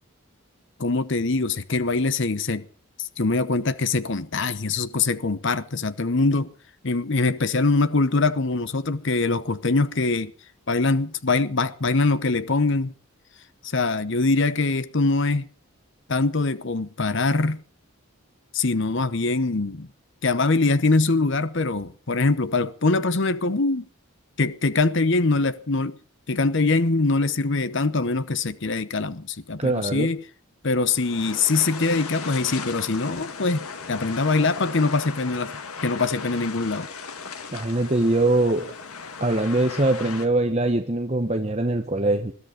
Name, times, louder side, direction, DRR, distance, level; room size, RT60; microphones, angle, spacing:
voice 1, 0.8-2.6 3.0-6.5 6.8-10.3 10.7-12.9 13.6-15.5 16.1-17.6 18.5-19.9 20.2-23.9 24.4-26.0 26.3-30.2 30.6-35.5 35.8-36.9, left 3 dB, 55° left, 0.9 m, -23 dB
voice 2, 29.6-30.1 37.5-38.7 39.2-42.3, right 2 dB, 30° right, 1.1 m, -22 dB
sound 1, 30.9-40.3, left 5 dB, 85° left, 1.8 m, -37 dB
21.5 x 13.0 x 5.1 m
head